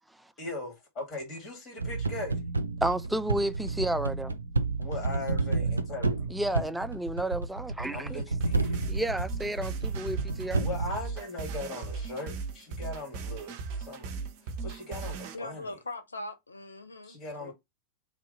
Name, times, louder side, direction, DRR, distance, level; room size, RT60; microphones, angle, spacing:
voice 1, 0.4-2.4 4.8-6.3 7.9-8.9 10.6-14.1 14.4-15.8 17.0-17.5, left 2 dB, 35° left, 2.0 m, -39 dB
sound 1, 1.8-11.0, right 3 dB, 80° right, 0.4 m, -31 dB
voice 2, 2.8-4.4 6.3-8.2 8.9-10.7, right 1 dB, 5° right, 0.3 m, -31 dB
sound 2, 8.4-15.3, right 4 dB, 45° right, 0.8 m, -37 dB
voice 3, 15.3-17.5, left 2 dB, 75° left, 0.7 m, -41 dB
3.3 x 2.7 x 3.9 m
figure-of-eight pair, 90°, 0 cm